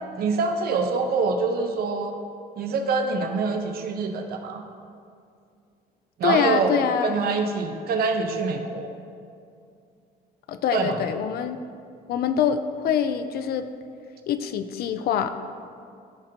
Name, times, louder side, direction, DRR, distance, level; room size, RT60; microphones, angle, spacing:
voice 1, 0.2-2.2 2.6-4.6 6.2-6.7 7.0-8.9 10.7-11.0, right 4 dB, 65° right, 5 dB, 0.9 m, -25 dB
voice 2, 6.2-7.2 10.5-11.6 12.1-13.7 14.3-15.3, left 8 dB, 65° left, 9 dB, 0.5 m, -24 dB
14.0 x 5.2 x 2.9 m, 2.4 s
cardioid pair, 110°, 17 cm